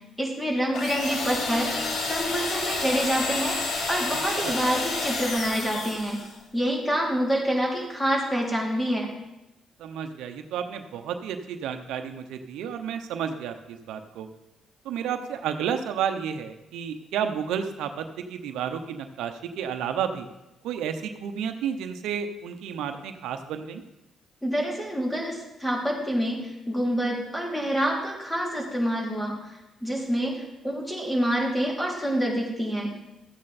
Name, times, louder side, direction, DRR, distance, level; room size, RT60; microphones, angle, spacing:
voice 1, 0.2-1.7 2.0-3.6 3.9-6.2 6.5-9.1 24.4-29.6 29.8-33.0, equal, 10° left, -2 dB, 3.3 m, -27 dB
sound 1, 0.7-6.4, left 3 dB, 70° left, 2.1 m, -30 dB
voice 2, 9.8-14.3 14.8-20.3 20.6-23.8, right 8 dB, 90° right, 7 dB, 0.9 m, -31 dB
13.5 x 8.8 x 4.3 m, 0.94 s
cardioid pair, 90°, 0 cm